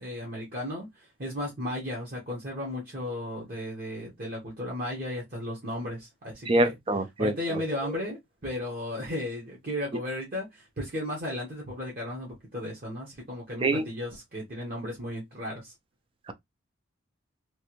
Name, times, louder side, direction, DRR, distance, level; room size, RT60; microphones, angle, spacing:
voice 1, 0.0-6.7 7.2-15.7, left 1 dB, 45° right, 1.1 m, -35 dB
voice 2, 6.5-7.3 13.6-13.8 16.3-16.4, right 2 dB, 25° right, 0.4 m, -25 dB
3.3 x 2.5 x 3.0 m
head